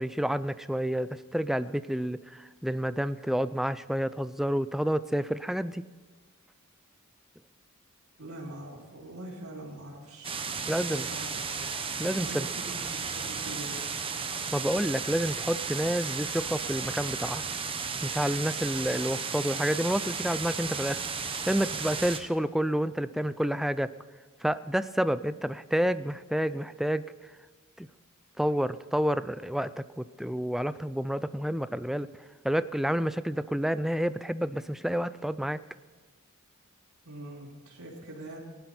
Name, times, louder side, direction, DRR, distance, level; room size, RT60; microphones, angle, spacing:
voice 1, 0.0-5.8 10.7-11.1 12.0-12.5 14.5-17.4 18.0-21.0 21.5-23.9 24.4-27.1 27.8-27.9 28.4-32.1 32.4-35.6, equal, ahead, 14 dB, 0.3 m, -29 dB
voice 2, 8.2-11.7 12.0-13.9 37.0-38.4, right 1 dB, 75° right, -8 dB, 3.3 m, -43 dB
sound 1, 10.2-22.2, right 5 dB, 25° right, 1.1 m, -34 dB
18.0 x 11.5 x 4.3 m, 1.5 s
head